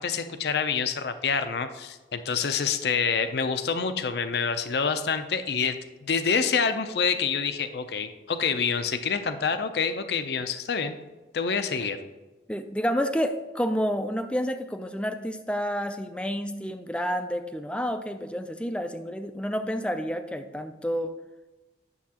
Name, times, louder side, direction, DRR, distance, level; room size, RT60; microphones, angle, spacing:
voice 1, 0.0-11.0 11.3-12.0, left 6 dB, 65° left, 9 dB, 0.5 m, -27 dB
voice 2, 12.5-21.1, equal, 5° left, 8 dB, 0.3 m, -29 dB
9.6 x 7.0 x 2.9 m, 1.2 s
head